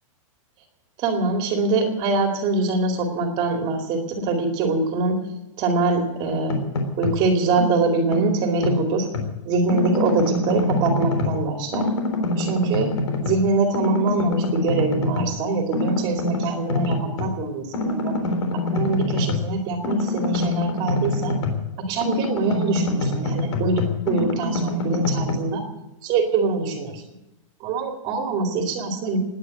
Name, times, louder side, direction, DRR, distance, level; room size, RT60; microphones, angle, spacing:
voice 1, 1.0-5.2 5.6-6.6 7.0-9.1 9.4-11.9 12.4-12.9 13.2-18.1 18.7-21.3 21.9-25.6 26.0-27.0 27.6-29.2, right 3 dB, 30° right, 4 dB, 2.4 m, -23 dB
sound 1, 6.2-7.2 7.6-9.3 9.7-11.4 11.7-13.5 13.7-15.3 15.7-17.3 17.7-21.7 22.0-25.3, left 2 dB, 60° left, 3.7 m, -25 dB
19.0 x 9.5 x 7.7 m, 0.93 s
hypercardioid pair, 160°, 17 cm